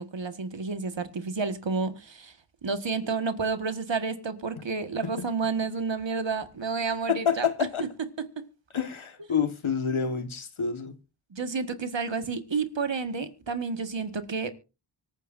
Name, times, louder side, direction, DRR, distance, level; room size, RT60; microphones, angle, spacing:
voice 1, 0.0-2.4 2.6-7.5 7.8-8.5 11.3-14.5, right 4 dB, 65° right, 1.7 m, -30 dB
voice 2, 7.1-7.8 8.7-10.9, left 7 dB, 85° left, 1.6 m, -28 dB
24.5 x 9.4 x 2.6 m
wide cardioid pair, 55°, 47 cm